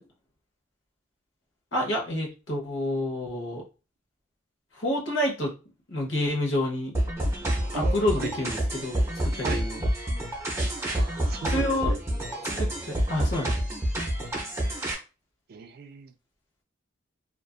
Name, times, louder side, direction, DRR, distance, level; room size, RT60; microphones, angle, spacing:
voice 1, 1.7-3.6 4.8-5.5 5.9-6.9 7.7-9.8 11.5-11.9 12.4-13.6, left 1 dB, 65° left, 0.9 m, -29 dB
sound 1, 6.9-14.9, right 1 dB, 15° right, 0.6 m, -28 dB
voice 2, 7.7-8.3 9.4-9.6 11.0-12.0 15.5-16.1, right 5 dB, 50° right, 0.3 m, -36 dB
2.5 x 2.4 x 2.3 m
head